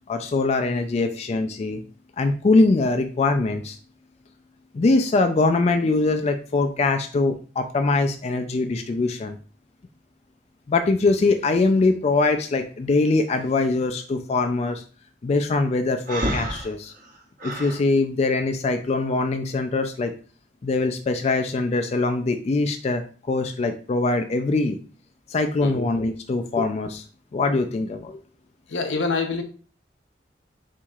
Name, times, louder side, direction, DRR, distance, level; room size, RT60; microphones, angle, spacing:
voice 1, 0.1-1.8 2.2-3.8 4.7-9.4 10.7-14.8 15.2-16.9 17.4-20.1 20.6-23.0 23.3-24.8 25.3-27.0 27.3-28.2, left 3 dB, 35° left, 0.3 m, -22 dB
Breathing, 16.1-17.8, right 1 dB, 50° right, 1.0 m, -29 dB
voice 2, 28.7-29.4, left 4 dB, 85° left, 0.7 m, -25 dB
4.6 x 4.1 x 2.3 m
head